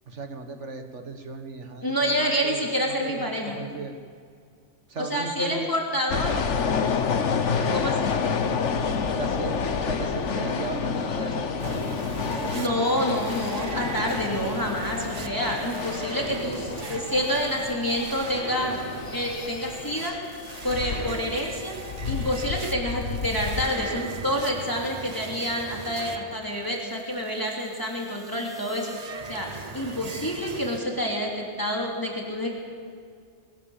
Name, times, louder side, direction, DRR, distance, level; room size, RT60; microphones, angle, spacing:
voice 1, 0.1-4.0 4.9-5.7 7.2-7.6 9.1-13.2 15.0-15.3, right 4 dB, 75° right, 6 dB, 2.0 m, -37 dB
voice 2, 1.8-3.6 5.0-6.4 7.7-8.2 12.5-18.8 19.1-20.2 20.6-21.7 22.0-28.9 29.3-32.5, equal, 15° left, -2 dB, 3.1 m, -28 dB
sound 1, 6.1-23.7, left 6 dB, 75° left, 1.4 m, -29 dB
sound 2, 11.6-30.8, right 4 dB, 35° right, 1.0 m, -40 dB
21.5 x 19.0 x 7.3 m, 2.1 s
omnidirectional pair, 1.2 m